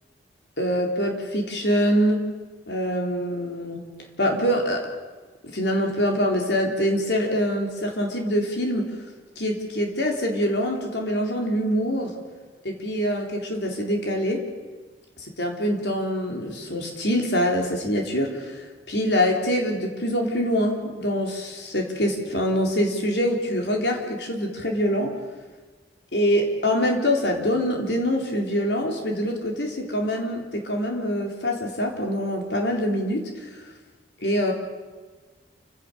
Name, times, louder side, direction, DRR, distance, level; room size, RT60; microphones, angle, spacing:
voice 1, 0.6-2.2 2.7-3.9 4.2-4.9 5.4-8.9 9.4-12.1 12.6-14.4 15.2-25.1 26.1-33.6 34.2-34.5, equal, 75° left, 2 dB, 3.9 m, -24 dB
29.0 x 16.5 x 6.9 m, 1.4 s
head